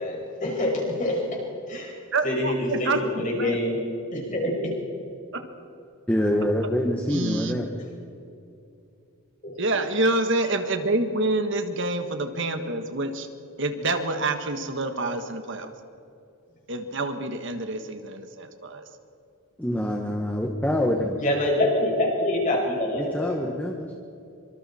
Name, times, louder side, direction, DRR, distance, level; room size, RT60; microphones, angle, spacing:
voice 1, 0.0-1.4 1.7-2.0 2.2-3.8 4.1-4.7 9.4-9.6 21.2-23.3, left 1 dB, 35° left, -1 dB, 5.9 m, -26 dB
voice 2, 2.1-3.6 5.3-5.4 7.1-7.6 9.6-13.3 13.6-15.7 16.7-18.9, right 2 dB, 55° right, 7 dB, 1.5 m, -27 dB
voice 3, 6.1-7.7 19.6-21.2 22.9-23.9, equal, 5° left, 1 dB, 1.3 m, -25 dB
25.5 x 25.5 x 4.3 m, 2.7 s
head